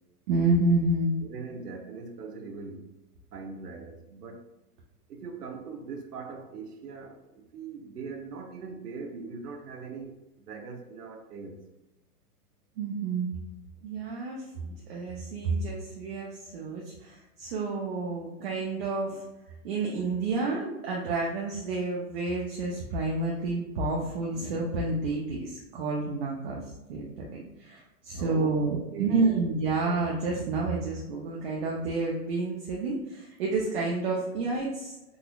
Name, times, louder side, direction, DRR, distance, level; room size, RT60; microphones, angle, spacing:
voice 1, 0.3-1.1 12.8-13.3 13.8-14.4 14.6-19.2 19.6-26.6 26.9-34.9, right 3 dB, 40° right, -3 dB, 0.6 m, -29 dB
voice 2, 1.2-2.9 3.3-4.4 5.1-11.7 14.6-14.7 28.1-28.6 28.9-29.5, right 4 dB, 90° right, 4 dB, 0.8 m, -41 dB
3.9 x 2.9 x 2.2 m, 0.97 s
hypercardioid pair, 145°, 45 cm